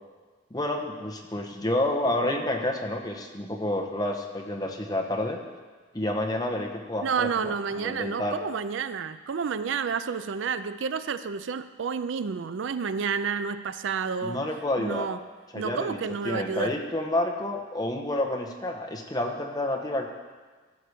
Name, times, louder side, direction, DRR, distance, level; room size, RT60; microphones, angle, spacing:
voice 1, 0.5-5.4 5.9-8.4 14.2-15.1 15.5-16.0 16.2-20.1, left 1 dB, 20° left, 2 dB, 1.0 m, -29 dB
voice 2, 7.0-14.4 14.8-15.2 15.5-16.8, right 6 dB, 70° right, 13 dB, 0.4 m, -30 dB
14.5 x 5.0 x 6.7 m, 1.4 s
head